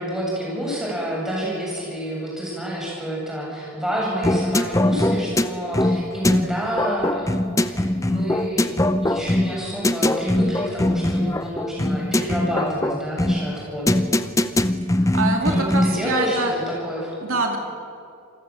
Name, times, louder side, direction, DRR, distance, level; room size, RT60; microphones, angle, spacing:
voice 1, 0.0-7.3 7.6-8.7 9.0-14.0 15.4-17.1, equal, ahead, -5 dB, 7.8 m, -28 dB
sound 1, 4.2-16.0, left 1 dB, 15° left, 0.6 m, -22 dB
voice 2, 15.0-16.5 17.2-17.6, right 3 dB, 70° right, 2 dB, 2.5 m, -24 dB
27.5 x 20.0 x 7.7 m, 2.5 s
head